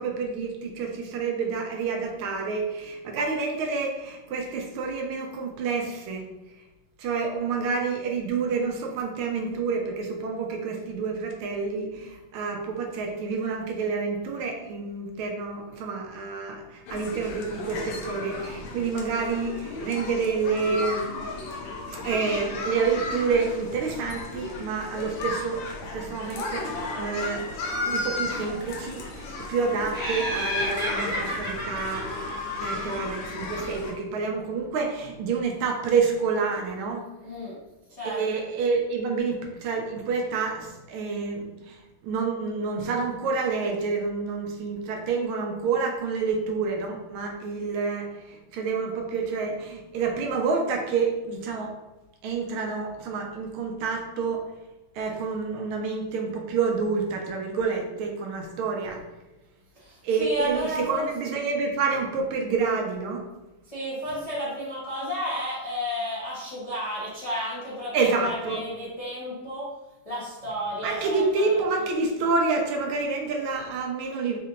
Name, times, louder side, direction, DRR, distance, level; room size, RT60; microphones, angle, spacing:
voice 1, 0.0-6.3 7.0-21.2 22.0-27.5 27.9-32.1 32.6-37.0 38.0-51.7 52.2-54.4 54.9-59.0 60.0-63.2 67.9-68.7 70.8-74.4, right 4 dB, 80° right, 2 dB, 1.4 m, -28 dB
sound 1, 16.9-33.9, left 3 dB, 75° left, 1.4 m, -34 dB
Laughter, 29.9-33.2, equal, 5° right, 0.9 m, -32 dB
voice 2, 37.2-37.6 37.9-38.5 59.8-61.3 63.7-69.7 70.0-71.9, equal, 40° left, -9 dB, 0.5 m, -32 dB
4.3 x 2.8 x 2.4 m, 1.0 s
omnidirectional pair, 2.4 m